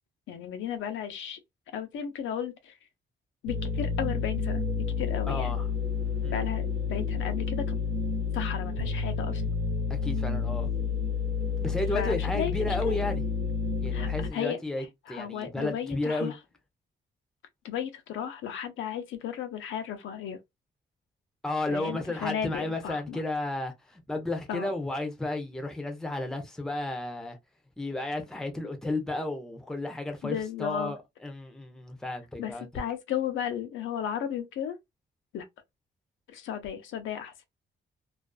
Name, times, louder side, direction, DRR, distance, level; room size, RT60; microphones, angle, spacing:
voice 1, 0.3-1.4 1.7-2.7 3.4-4.6 5.0-5.5 6.3-7.8 8.3-9.4 11.9-13.0 13.9-16.4 17.6-20.4 21.7-23.2 24.5-24.7 30.2-30.9 32.4-34.8 35.3-35.5 36.3-37.3, left 9 dB, 80° left, 0.5 m, -34 dB
sound 1, 3.5-14.3, left 5 dB, 85° right, 0.6 m, -30 dB
voice 2, 5.3-5.6 6.2-6.4 9.9-10.7 11.6-13.2 13.8-16.3 21.4-27.4 27.8-32.7, left 2 dB, 5° left, 0.5 m, -33 dB
2.4 x 2.3 x 2.2 m
cardioid pair, 145°, 20 cm